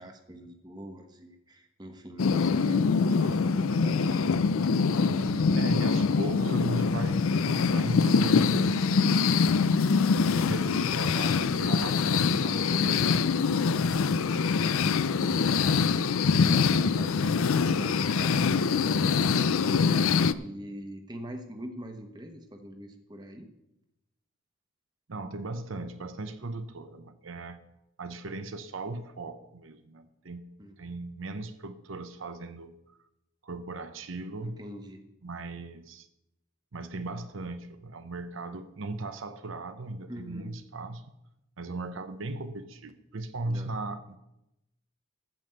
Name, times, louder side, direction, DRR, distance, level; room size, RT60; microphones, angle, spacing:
voice 1, 0.0-4.7 5.0-6.1 14.3-14.8 15.2-23.5 30.6-30.8 34.4-35.0 40.1-40.5 43.4-43.7, equal, 20° right, 5 dB, 1.1 m, -44 dB
sound 1, 2.2-20.3, left 5 dB, 85° left, 0.5 m, -24 dB
voice 2, 5.6-9.6 10.2-13.6 25.1-27.6 28.0-30.5 30.8-32.8 33.4-34.6 35.2-36.1 36.7-41.1 41.6-44.2, right 2 dB, 75° right, 9 dB, 0.7 m, -37 dB
13.5 x 5.3 x 7.7 m, 0.88 s
head